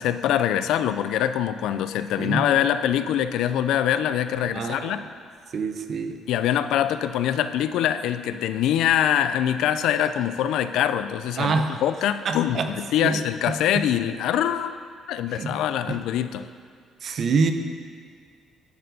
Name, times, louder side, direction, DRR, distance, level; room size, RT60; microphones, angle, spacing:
voice 1, 0.0-5.0 6.3-14.8 15.1-16.5, left 10 dB, 75° left, 11 dB, 0.3 m, -24 dB
voice 2, 4.5-5.0 5.5-6.2 11.4-11.8 12.2-12.7 13.0-13.2 15.3-15.6 15.9-16.0 17.0-17.5, right 5 dB, 40° right, 7 dB, 0.6 m, -26 dB
10.0 x 6.6 x 4.0 m, 2.1 s
cardioid pair, 165°, 0 cm